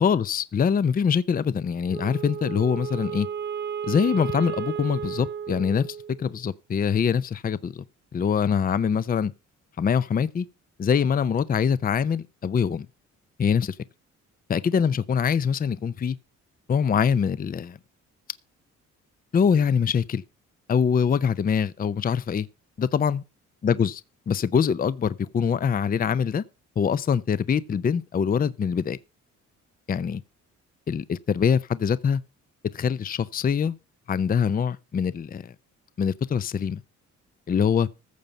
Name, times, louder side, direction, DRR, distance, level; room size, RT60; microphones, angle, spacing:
voice 1, 0.0-3.3 3.8-7.8 8.1-9.3 9.8-10.5 10.8-12.9 13.4-13.8 14.5-16.2 16.7-17.8 19.3-20.2 20.7-22.5 22.8-23.2 23.6-24.0 24.3-26.4 26.8-29.0 29.9-30.2 30.9-32.2 32.7-33.7 34.1-35.5 36.0-36.8 37.5-37.9, left 7 dB, 30° left, 0.5 m, -24 dB
Wind instrument woodwind instrument, 1.9-6.3, right 8 dB, 35° right, 0.7 m, -33 dB
14.5 x 6.9 x 5.2 m
cardioid pair, 90°, 30 cm